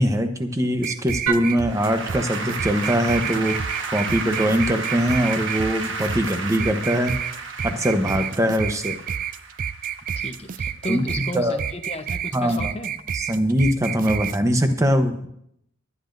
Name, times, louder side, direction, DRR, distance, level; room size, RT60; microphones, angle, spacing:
voice 1, 0.0-3.6 3.9-7.2 7.6-8.9 10.9-11.6 12.3-12.7 13.1-15.3, equal, 15° right, 7 dB, 0.9 m, -22 dB
sound 1, 0.8-14.4, right 8 dB, 40° right, 0.4 m, -30 dB
Applause / Keyboard (musical), 1.3-10.6, right 4 dB, 60° right, 1.4 m, -32 dB
voice 2, 10.2-12.9, left 1 dB, 30° left, 6 dB, 0.9 m, -33 dB
23.5 x 10.5 x 2.6 m, 0.74 s
head